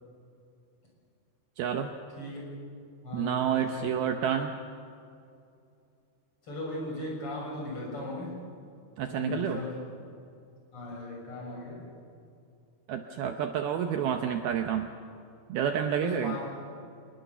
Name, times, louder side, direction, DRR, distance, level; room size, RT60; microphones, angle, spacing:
voice 1, 1.6-1.9 3.1-4.5 9.0-9.6 12.9-14.9 15.5-16.4, right 8 dB, 75° right, 6 dB, 2.3 m, -29 dB
voice 2, 3.0-4.0 6.4-8.4 9.1-9.8 10.7-11.9 16.0-16.5, left 2 dB, 30° left, -3 dB, 7.4 m, -37 dB
25.5 x 21.0 x 6.9 m, 2.5 s
omnidirectional pair, 5.3 m